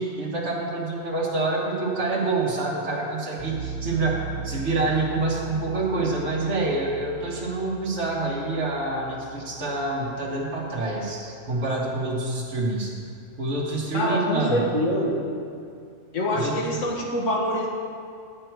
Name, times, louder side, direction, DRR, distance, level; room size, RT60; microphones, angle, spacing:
voice 1, 0.0-12.9 13.4-14.7 16.3-16.8, right 2 dB, 60° right, -5 dB, 1.5 m, -27 dB
sound 1, 3.4-12.3, right 7 dB, 15° right, 1.6 m, -39 dB
voice 2, 13.9-15.2 16.1-17.7, left 1 dB, 90° left, -1 dB, 1.6 m, -25 dB
10.0 x 8.5 x 4.6 m, 2.4 s
omnidirectional pair, 1.3 m